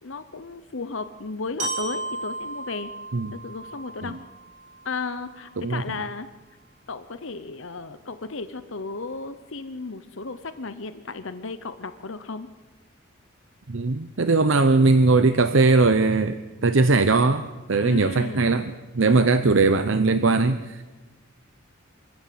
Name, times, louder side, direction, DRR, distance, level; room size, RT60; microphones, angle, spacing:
voice 1, 0.0-2.9 3.3-4.1 4.8-6.3 6.9-12.5 17.8-18.6 19.0-19.3, left 4 dB, 65° left, 11 dB, 0.9 m, -34 dB
Glockenspiel, 1.6-5.6, right 2 dB, 35° right, 5.2 m, -35 dB
voice 2, 13.7-20.8, right 3 dB, 65° right, 10 dB, 0.8 m, -20 dB
25.5 x 16.0 x 7.6 m, 1.2 s
head